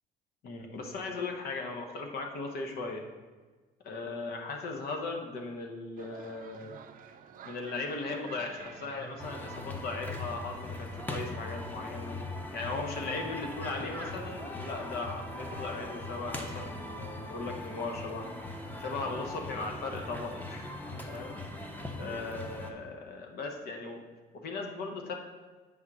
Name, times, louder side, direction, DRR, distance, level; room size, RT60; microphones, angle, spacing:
voice 1, 0.4-3.0 3.8-6.8 7.4-12.2 12.5-18.3 18.8-20.7 21.0-21.3 22.0-24.0 24.3-25.1, left 3 dB, 65° left, 3 dB, 1.0 m, -38 dB
sound 1, 6.0-11.0, right 7 dB, 55° right, 0.5 m, -50 dB
sound 2, 9.2-22.7, left 2 dB, 10° left, 0.9 m, -40 dB
8.0 x 3.7 x 5.9 m, 1.3 s
cardioid pair, 110°, 17 cm